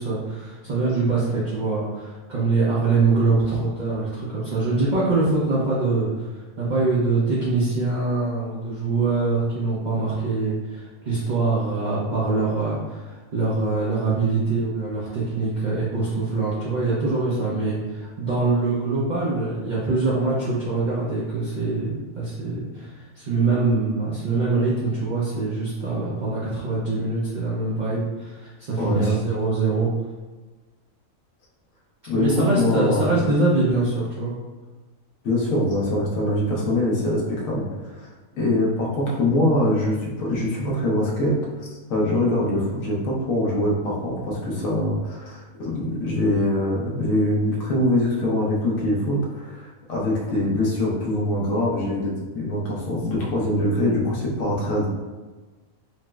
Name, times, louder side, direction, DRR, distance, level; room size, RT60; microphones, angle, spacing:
voice 1, 0.0-29.9 32.1-34.3, right 3 dB, 60° right, -8 dB, 0.5 m, -24 dB
voice 2, 28.8-29.1 32.1-33.4 35.2-37.7 37.9-38.1 38.4-41.4 41.9-54.9, left 1 dB, 75° left, -4 dB, 1.2 m, -23 dB
4.1 x 2.0 x 2.2 m, 1.3 s
omnidirectional pair, 1.4 m